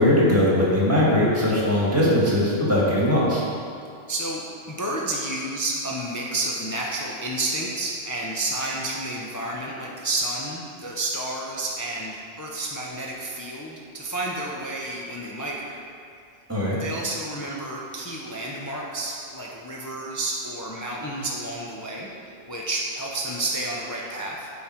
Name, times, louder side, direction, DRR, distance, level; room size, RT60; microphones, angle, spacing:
voice 1, 0.0-3.4 16.5-16.8, left 1 dB, 15° right, -7 dB, 1.7 m, -20 dB
voice 2, 4.1-4.4 4.7-15.8 16.7-24.5, right 2 dB, 25° left, -3 dB, 0.4 m, -30 dB
8.3 x 3.8 x 4.3 m, 2.4 s
omnidirectional pair, 1.2 m